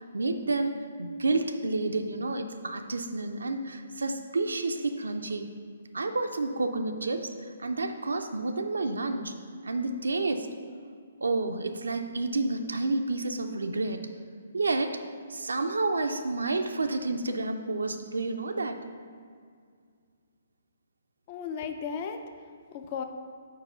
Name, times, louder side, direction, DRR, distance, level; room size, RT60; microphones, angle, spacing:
voice 1, 0.1-5.5 5.9-9.3 9.6-10.5 11.2-14.1 14.5-15.0 15.3-18.8, right 3 dB, 75° right, 6 dB, 0.5 m, -30 dB
voice 2, 21.3-23.0, left 6 dB, 35° left, 6 dB, 0.5 m, -36 dB
4.8 x 4.6 x 6.0 m, 2.1 s
figure-of-eight pair, 130°, 0 cm